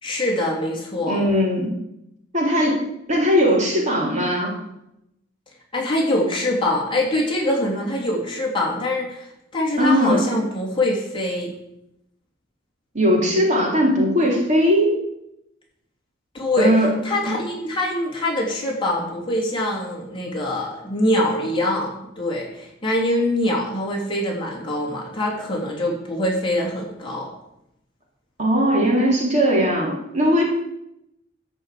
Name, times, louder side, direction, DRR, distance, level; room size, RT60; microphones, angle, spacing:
voice 1, 0.0-1.2 5.7-9.3 9.5-11.5 16.3-27.3, left 1 dB, 25° left, -3 dB, 3.1 m, -24 dB
voice 2, 1.1-1.7 2.3-2.8 3.1-4.5 9.8-10.2 12.9-14.9 16.6-16.9 28.4-30.4, equal, 35° right, -2 dB, 3.3 m, -19 dB
13.5 x 5.3 x 8.4 m, 0.83 s
head